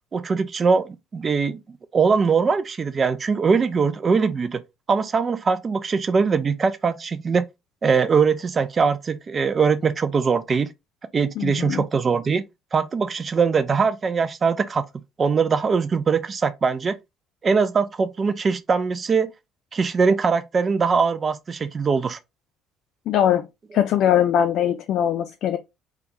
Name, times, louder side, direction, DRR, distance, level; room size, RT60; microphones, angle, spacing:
voice 1, 0.1-1.6 1.9-4.6 4.9-7.4 7.8-10.7 11.1-12.4 12.7-14.8 15.2-17.0 17.4-19.3 19.7-22.2, right 5 dB, 35° right, 0.4 m, -21 dB
voice 2, 11.4-11.8 23.1-23.5 23.7-25.6, left 10 dB, 60° left, 0.3 m, -21 dB
3.5 x 2.3 x 2.9 m
hypercardioid pair, 55°, 0 cm